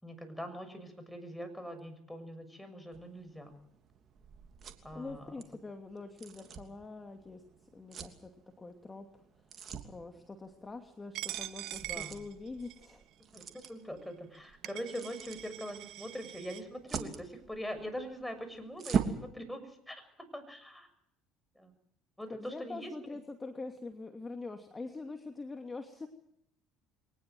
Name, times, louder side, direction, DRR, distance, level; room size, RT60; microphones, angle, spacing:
voice 1, 0.0-3.6 4.8-5.3 11.7-12.2 13.3-20.9 21.5-21.7 22.2-22.9, equal, 5° left, 9 dB, 6.6 m, -43 dB
sound 1, 2.9-19.3, right 7 dB, 50° right, 3.0 m, -43 dB
voice 2, 4.9-7.4 7.7-8.3 8.6-9.2 9.8-13.0 22.3-26.1, left 3 dB, 25° left, 5 dB, 2.7 m, -44 dB
Coin (dropping), 11.1-12.9 13.6-13.7 14.3-14.4 14.6-16.6, right 16 dB, 70° right, 1.1 m, -43 dB
23.5 x 19.5 x 7.9 m, 0.74 s
hypercardioid pair, 65°, 0 cm